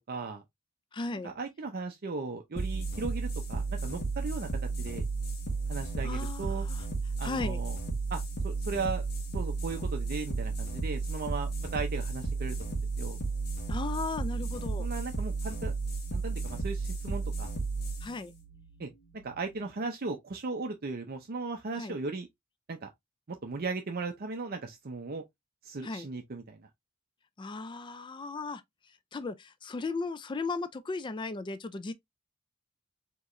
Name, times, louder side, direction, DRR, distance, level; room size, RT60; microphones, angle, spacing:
voice 1, 0.1-0.4 1.2-4.5 4.8-5.0 5.7-6.7 7.2-7.8 8.1-9.0 9.3-13.2 14.8-15.7 16.1-17.5 18.8-22.3 22.7-22.9 23.3-25.2 25.6-26.7, right 3 dB, 45° right, 0.6 m, -37 dB
voice 2, 0.9-1.3 6.0-6.9 7.2-7.6 13.7-14.9 18.0-18.3 21.7-22.0 25.8-26.1 27.4-28.6 28.9-31.9, left 3 dB, 20° left, 0.3 m, -36 dB
sound 1, 2.6-19.6, right 3 dB, 50° left, 1.3 m, -33 dB
4.6 x 2.9 x 2.5 m
head